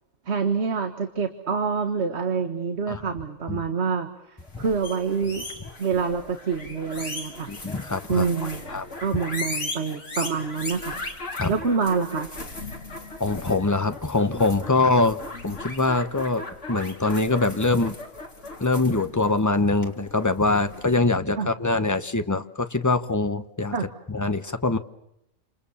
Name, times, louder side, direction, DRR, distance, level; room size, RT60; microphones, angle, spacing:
voice 1, 0.3-5.5 5.8-7.5 8.1-8.6 9.0-11.0 11.5-12.3 21.4-21.5 23.7-23.9, right 5 dB, 50° right, 6 dB, 1.7 m, -26 dB
sound 1, 4.4-20.9, left 2 dB, 55° left, 3.8 m, -37 dB
voice 2, 7.5-8.2 8.7-8.9 11.4-11.5 13.2-16.4 16.7-17.9 18.6-23.7 24.1-24.8, left 3 dB, 15° left, 9 dB, 0.9 m, -23 dB
28.5 x 28.0 x 7.2 m, 0.82 s
omnidirectional pair, 1.5 m